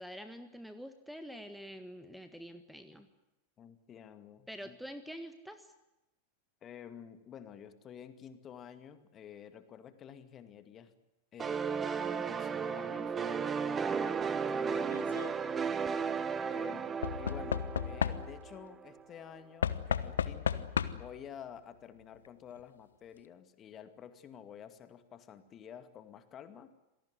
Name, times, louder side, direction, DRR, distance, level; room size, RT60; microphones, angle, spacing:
voice 1, 0.0-3.1 4.5-5.7, equal, ahead, 9 dB, 1.7 m, -46 dB
voice 2, 3.6-4.8 6.6-10.9 11.3-13.2 14.4-15.4 16.0-26.7, left 8 dB, 30° left, 10 dB, 2.3 m, -50 dB
sound 1, 11.4-18.9, right 6 dB, 20° right, 1.4 m, -34 dB
Knock / Wood, 14.8-15.3 17.0-18.6 19.6-21.2 22.3-22.4 22.6-22.7, left 8 dB, 65° left, 1.2 m, -34 dB
27.0 x 18.5 x 9.6 m, 0.97 s
figure-of-eight pair, 90°, 0 cm